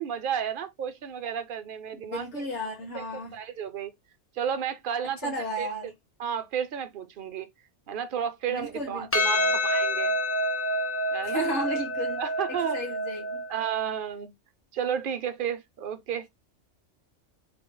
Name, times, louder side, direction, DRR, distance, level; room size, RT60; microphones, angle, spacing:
voice 1, 0.0-2.5 2.9-3.9 4.4-5.7 6.2-7.5 7.9-10.1 11.1-11.5 12.2-12.8 13.5-14.3 14.7-16.3, right 8 dB, 55° right, 0.7 m, -32 dB
voice 2, 1.9-3.4 5.2-5.9 8.5-9.6 11.2-12.2 12.7-13.4, equal, 70° left, 1.9 m, -34 dB
Percussion, 9.1-13.7, equal, 20° left, 0.3 m, -28 dB
3.7 x 2.0 x 3.7 m
omnidirectional pair, 1.2 m